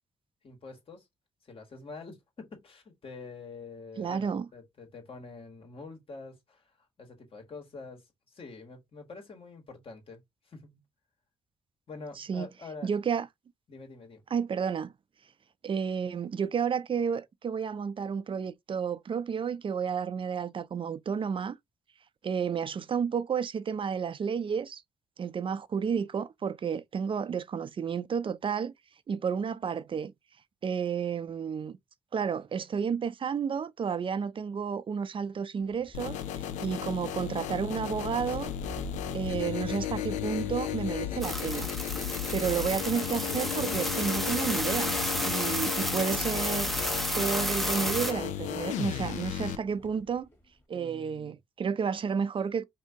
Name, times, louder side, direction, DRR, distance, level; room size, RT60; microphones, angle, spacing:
voice 1, 0.4-1.0 1.4-6.6 7.0-10.8 11.9-12.9 13.7-14.2 50.7-51.4, left 3 dB, 50° left, 1.5 m, -46 dB
voice 2, 4.0-4.5 12.2-12.5 12.8-13.3 14.3-14.9 15.6-21.6 22.2-24.8 25.2-28.7 29.1-30.1 30.6-31.8 32.1-36.2 36.6-38.5 39.1-41.7 42.3-44.9 45.2-46.7 47.1-50.3 50.7-52.6, right 6 dB, 45° right, 0.5 m, -31 dB
sound 1, 35.6-50.6, equal, 15° left, 1.4 m, -47 dB
sound 2, 35.9-49.5, left 11 dB, 85° left, 0.4 m, -34 dB
sound 3, 41.2-48.1, equal, ahead, 0.6 m, -32 dB
2.8 x 2.7 x 3.5 m
supercardioid pair, 55°, 12 cm